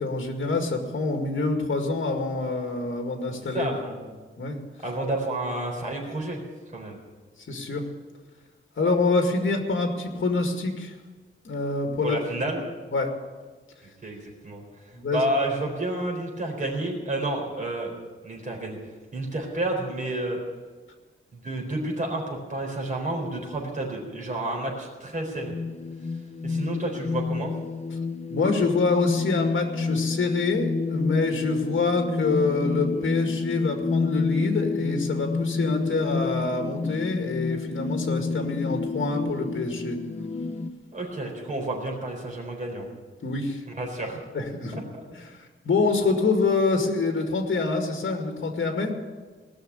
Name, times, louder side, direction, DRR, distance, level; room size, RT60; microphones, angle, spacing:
voice 1, 0.0-3.7 4.4-4.6 7.5-7.8 8.8-10.9 11.4-12.4 12.9-13.1 14.9-15.3 28.3-40.0 43.2-43.6 44.3-44.8 45.1-45.4 45.6-48.9, left 3 dB, 65° left, 3 dB, 2.1 m, -26 dB
voice 2, 3.5-3.9 4.8-6.4 6.7-7.0 12.0-12.6 14.0-14.2 14.4-14.6 15.1-17.9 18.2-18.8 19.1-20.4 21.3-25.5 26.4-27.5 40.9-42.9 43.8-44.2 44.7-44.8, right 1 dB, 40° right, 0 dB, 4.1 m, -30 dB
sound 1, 25.4-40.7, left 4 dB, 30° left, 0.7 m, -29 dB
18.5 x 6.5 x 9.7 m, 1.4 s
wide cardioid pair, 165°, 21 cm